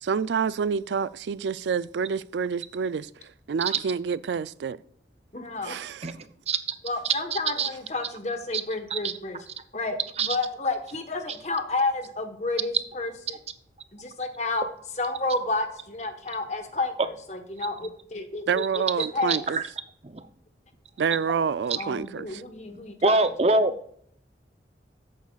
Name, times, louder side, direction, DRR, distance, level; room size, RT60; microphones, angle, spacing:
voice 1, 0.0-3.1 3.5-4.8 5.6-6.1 18.5-19.6 21.0-22.4, right 6 dB, 80° right, 0.4 m, -28 dB
voice 2, 5.3-5.8 6.8-9.4 9.7-13.4 13.9-14.7 15.0-18.6 19.1-19.5 21.8-23.1, left 3 dB, 40° left, 1.2 m, -30 dB
voice 3, 7.3-7.7 8.5-8.6 8.9-9.1 10.2-10.3 19.0-19.6 20.1-20.2 23.0-23.7, right 3 dB, 35° right, 0.6 m, -24 dB
10.5 x 8.4 x 2.4 m
head